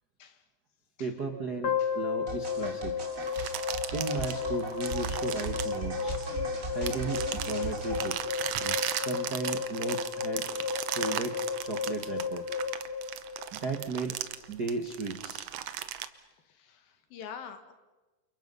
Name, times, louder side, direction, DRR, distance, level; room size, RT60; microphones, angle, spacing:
voice 1, 1.0-3.0 3.9-6.2 6.7-8.2 8.9-10.5 11.0-12.4 13.5-14.2 14.5-15.5, right 4 dB, 55° right, 4 dB, 1.1 m, -35 dB
sound 1, 1.6-13.9, left 6 dB, 45° left, 2.2 m, -34 dB
sound 2, 2.3-8.1, right 3 dB, 25° right, 3.1 m, -38 dB
sound 3, 3.2-6.4 6.9-16.1, right 11 dB, 75° right, 1.4 m, -36 dB
voice 2, 16.5-17.7, left 7 dB, 80° left, 8 dB, 3.5 m, -48 dB
29.5 x 28.5 x 5.5 m, 1.2 s
omnidirectional pair, 4.0 m